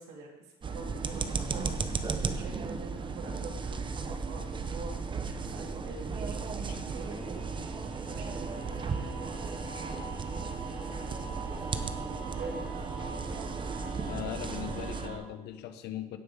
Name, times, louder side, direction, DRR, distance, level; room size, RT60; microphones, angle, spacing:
voice 1, 0.0-2.0 2.3-7.5 8.1-13.4, right 3 dB, 80° right, 0 dB, 2.9 m, -46 dB
sound 1, 0.6-15.1, right 4 dB, 30° right, 0.8 m, -35 dB
sound 2, 6.4-15.2, right 3 dB, 45° right, 2.9 m, -44 dB
voice 2, 14.1-16.2, left 11 dB, 80° left, 9 dB, 1.1 m, -39 dB
16.5 x 5.6 x 5.0 m, 1.0 s
cardioid pair, 110°, 17 cm